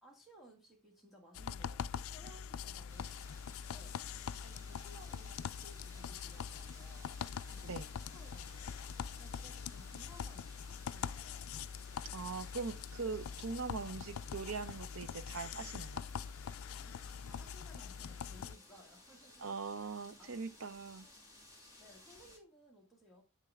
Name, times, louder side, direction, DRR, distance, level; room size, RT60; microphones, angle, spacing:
voice 1, 0.0-3.2 3.7-4.0 4.4-8.8 9.2-11.5 16.8-19.5 19.8-19.9 20.2-20.4 21.8-23.2, equal, ahead, 1.6 m, -60 dB
sound 1, 1.3-18.6, left 7 dB, 70° left, 0.4 m, -44 dB
sound 2, 2.9-22.4, left 1 dB, 20° right, 2.4 m, -58 dB
voice 2, 12.1-16.0 19.4-21.1, right 4 dB, 65° right, 0.7 m, -41 dB
7.5 x 6.6 x 3.5 m
head